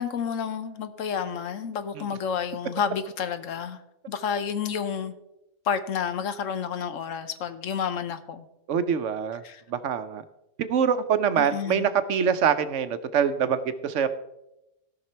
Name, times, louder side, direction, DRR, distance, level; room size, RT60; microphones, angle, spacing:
voice 1, 0.0-3.8 4.1-5.1 5.7-8.5 9.4-9.6 11.4-11.9, left 7 dB, 80° left, 1.2 m, -30 dB
voice 2, 8.7-9.4 9.7-10.2 10.6-14.1, right 7 dB, 70° right, 1.0 m, -24 dB
17.0 x 5.9 x 4.4 m
omnidirectional pair, 1.3 m